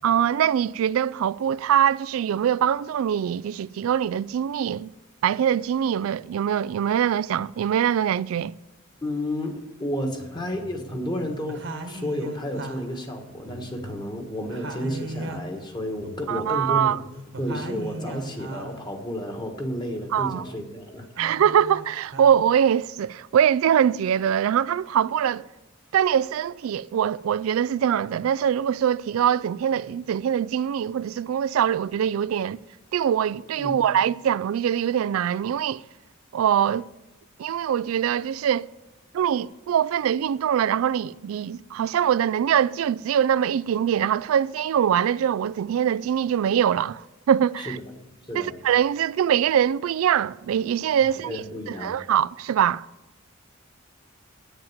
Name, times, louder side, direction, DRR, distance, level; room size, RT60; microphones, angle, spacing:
voice 1, 0.0-4.9 5.2-8.5 16.3-17.0 20.1-20.4 21.2-25.5 25.9-32.6 32.9-35.8 36.3-36.9 37.4-38.7 39.1-47.8 48.3-52.9, right 9 dB, 85° right, 0.3 m, -23 dB
voice 2, 9.0-17.0 17.4-21.1 33.6-33.7 47.6-47.8 48.3-48.6 51.2-52.0, equal, 20° left, 1.5 m, -31 dB
sound 1, 9.4-9.5 10.1-11.2 11.5-14.2 14.5-18.9 19.3-20.7 21.0-22.3, right 1 dB, 60° right, 1.3 m, -39 dB
10.5 x 9.0 x 7.3 m
head